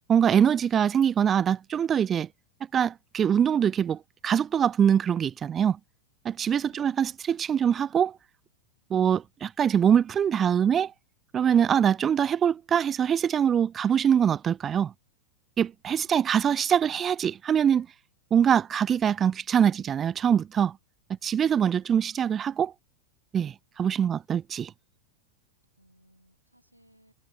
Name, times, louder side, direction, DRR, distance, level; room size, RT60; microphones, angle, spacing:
voice 1, 0.1-2.3 2.7-5.8 6.2-8.2 8.9-10.9 11.3-14.9 15.6-17.9 18.3-20.8 21.2-22.7 23.3-24.7, right 8 dB, 25° right, 0.4 m, -23 dB
voice 2, 25.8-27.1, right 1 dB, 90° right, 6.1 m, -61 dB
figure-of-eight pair, 90°, 0 cm